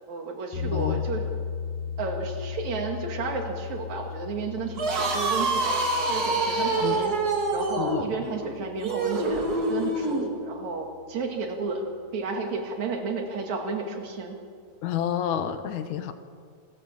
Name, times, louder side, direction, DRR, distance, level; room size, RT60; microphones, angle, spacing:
voice 1, 0.1-1.2 2.0-5.7 6.1-7.1 7.5-9.4 9.7-11.8 12.1-14.4, right 4 dB, 70° right, 3 dB, 3.5 m, -32 dB
sound 1, 0.5-10.6, left 7 dB, 75° left, 8.3 m, -37 dB
voice 2, 0.7-1.0 6.8-7.0 7.8-8.3 14.8-16.1, left 9 dB, 90° left, 10 dB, 2.5 m, -29 dB
sound 2, 4.7-10.3, right 2 dB, 35° right, 2.2 m, -26 dB
27.0 x 13.5 x 7.3 m, 2.1 s
omnidirectional pair, 3.4 m